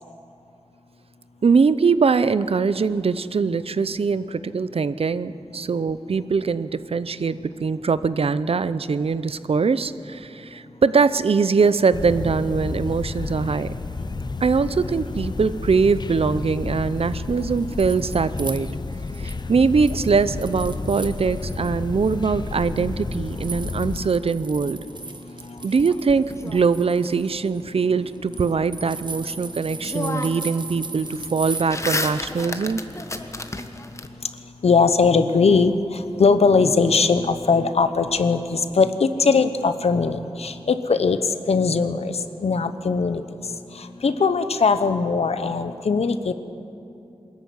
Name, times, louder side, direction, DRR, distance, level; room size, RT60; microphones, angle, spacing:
voice 1, 1.4-13.7 14.4-18.7 19.2-24.8 25.6-32.8, right 5 dB, 70° right, 15 dB, 0.7 m, -22 dB
sound 1, 11.9-24.1, left 3 dB, 45° left, 0.8 m, -31 dB
sound 2, 17.4-19.5 19.8-21.7 22.0-31.6, right 3 dB, 50° right, 1.2 m, -38 dB
sound 3, 25.8-27.1 29.3-29.4 29.8-30.6 30.9-34.1, left 2 dB, 30° left, 1.3 m, -31 dB
voice 2, 34.6-35.7 36.2-41.2 41.5-43.2 44.0-46.3, left 4 dB, 85° left, 11 dB, 1.0 m, -20 dB
23.0 x 13.5 x 9.5 m, 2.7 s
wide cardioid pair, 85°, 10 cm